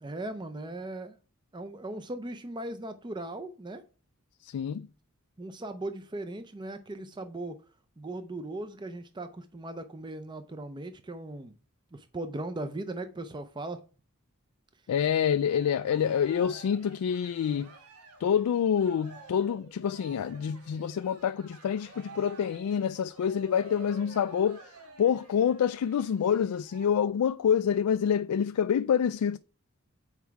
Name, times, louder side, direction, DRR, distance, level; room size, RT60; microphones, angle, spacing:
voice 1, 0.0-1.2 1.5-3.8 5.4-7.6 8.0-11.5 11.9-13.8, right 2 dB, 20° right, 0.5 m, -38 dB
voice 2, 4.4-4.9 14.9-17.7 18.2-24.6 25.0-29.4, left 8 dB, 85° left, 0.3 m, -27 dB
Cheering, 15.1-26.9, right 3 dB, 80° right, 1.6 m, -51 dB
8.1 x 4.6 x 4.6 m
head